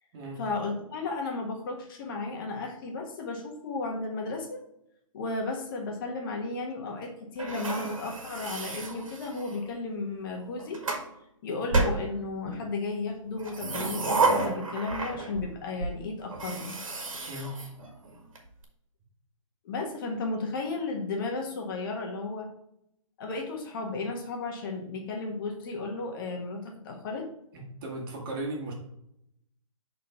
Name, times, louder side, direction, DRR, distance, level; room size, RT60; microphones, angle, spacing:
voice 1, 0.4-4.6 5.1-10.8 11.4-16.8 19.6-22.5 23.2-27.3, left 3 dB, 40° left, 1 dB, 1.5 m, -34 dB
sound 1, 7.4-9.7 10.4-11.1 11.7-12.6 13.4-15.5 15.8-15.9 16.3-18.4, right 3 dB, 70° right, 1.9 m, -31 dB
voice 2, 27.5-28.7, right 1 dB, 40° right, -1 dB, 2.2 m, -36 dB
6.3 x 4.2 x 4.5 m, 0.78 s
hypercardioid pair, 145°, 17 cm